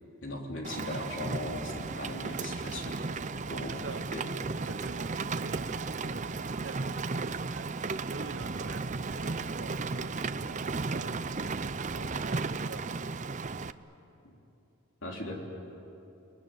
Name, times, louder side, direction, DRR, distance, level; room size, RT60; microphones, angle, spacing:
voice 1, 0.2-3.0 3.5-3.8 4.1-4.3 14.2-14.3 15.0-15.4, left 1 dB, 65° left, 0 dB, 3.9 m, -38 dB
Rain, 0.6-13.7, right 4 dB, 35° right, 0.6 m, -35 dB
voice 2, 3.5-4.1 4.6-6.3 6.6-7.3 7.5-7.8 8.1-10.6 10.9-11.2 11.9-12.9, right 3 dB, 65° right, 11 dB, 1.1 m, -44 dB
30.0 x 20.0 x 9.5 m, 2.9 s
head